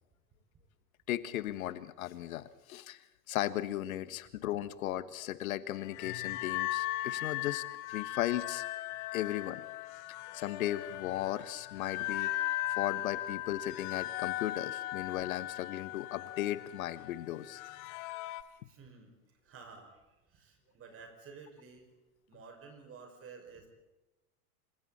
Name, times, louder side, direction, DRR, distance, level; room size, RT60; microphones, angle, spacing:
voice 1, 1.1-3.0 3.3-7.6 7.9-8.6 9.1-9.6 10.3-12.3 12.7-17.6, left 13 dB, 60° left, 15 dB, 1.5 m, -36 dB
sound 1, 5.8-18.4, left 16 dB, 45° left, 1.4 m, -38 dB
voice 2, 18.5-21.9 22.3-23.7, right 5 dB, 30° right, 4 dB, 6.2 m, -53 dB
27.5 x 26.0 x 4.3 m, 1.0 s
figure-of-eight pair, 95°, 47 cm